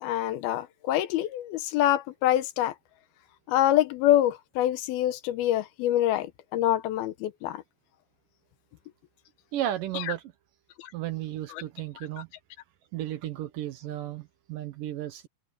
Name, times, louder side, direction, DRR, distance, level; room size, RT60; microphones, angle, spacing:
voice 1, 0.0-2.7 3.5-7.6 9.9-10.0 10.8-10.9, left 13 dB, 80° left, 2.6 m, -25 dB
voice 2, 9.5-10.2 10.9-12.3 12.9-15.3, right 12 dB, 70° right, 2.4 m, -34 dB
omnidirectional pair, 4.6 m